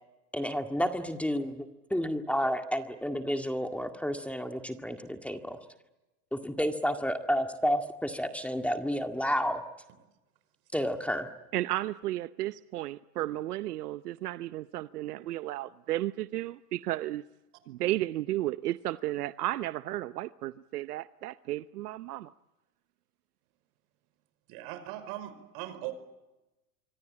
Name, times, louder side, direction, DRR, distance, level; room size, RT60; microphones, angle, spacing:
voice 1, 0.3-5.6 6.3-9.6 10.7-11.3, equal, 5° left, 2.0 m, -31 dB
voice 2, 11.5-17.2 17.7-22.3, right 15 dB, 85° right, 0.9 m, -33 dB
voice 3, 24.5-25.9, right 14 dB, 60° right, 5.4 m, -39 dB
25.5 x 25.0 x 8.7 m
hypercardioid pair, 115°, 45 cm